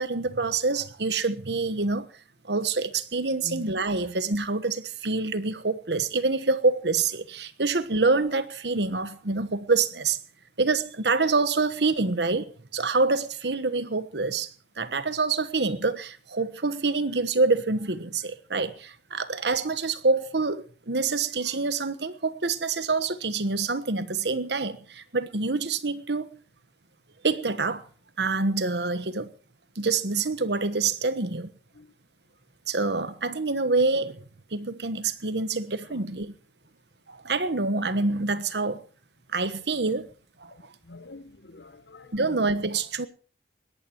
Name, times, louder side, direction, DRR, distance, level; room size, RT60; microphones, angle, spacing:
voice 1, 0.0-2.1 2.4-10.2 10.6-14.5 14.8-26.3 27.2-27.9 28.2-29.3 29.8-31.5 32.7-34.2 34.5-36.3 37.1-38.8 39.3-40.1 40.4-40.5 42.1-43.1, right 3 dB, 80° right, 1.2 m, -26 dB
voice 2, 3.4-3.8 7.6-7.7 31.7-31.9 35.0-35.1 35.9-36.0 40.5-42.4, left 2 dB, 80° left, 0.9 m, -45 dB
21.0 x 18.0 x 3.1 m
head